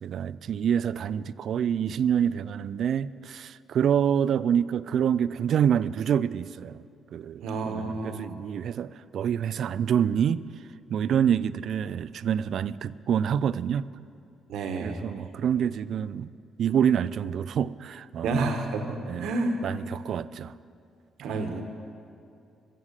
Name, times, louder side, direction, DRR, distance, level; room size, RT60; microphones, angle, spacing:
voice 1, 0.0-6.8 7.1-10.4 10.9-13.9 14.8-16.3 16.6-18.5 19.1-19.3 19.6-20.5 21.3-21.4, right 8 dB, 65° right, 0.3 m, -27 dB
voice 2, 7.4-8.3 14.5-15.0 18.2-19.6 21.2-21.6, right 3 dB, 80° right, 1.3 m, -30 dB
15.0 x 7.5 x 7.4 m
cardioid pair, 90°, 0 cm